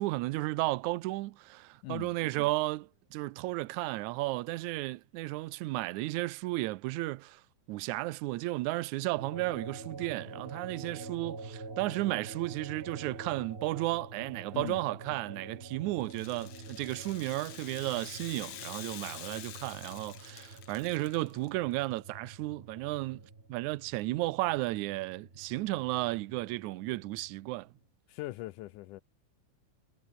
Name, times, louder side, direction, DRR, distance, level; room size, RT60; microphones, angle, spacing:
voice 1, 0.0-7.4 7.7-23.2 23.5-27.7, right 19 dB, 80° right, 1.8 m, -33 dB
sound 1, 9.2-27.9, right 3 dB, 20° right, 2.7 m, -47 dB
Rattle (instrument), 16.0-21.5, left 10 dB, 55° left, 2.2 m, -47 dB
voice 2, 28.1-29.0, left 17 dB, 80° left, 2.0 m, -40 dB
omnidirectional pair, 4.0 m